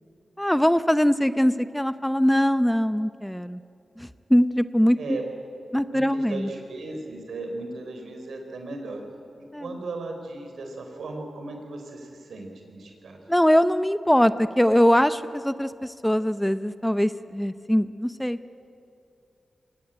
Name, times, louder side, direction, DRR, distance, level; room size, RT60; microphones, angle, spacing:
voice 1, 0.4-3.6 4.0-5.2 5.7-6.5 9.5-9.6 13.3-18.4, equal, 5° left, 12 dB, 0.7 m, -22 dB
voice 2, 4.9-5.2 5.9-9.0 9.4-13.2, right 2 dB, 85° right, 4 dB, 4.1 m, -36 dB
23.0 x 19.0 x 9.1 m, 2.7 s
cardioid pair, 60°, 0 cm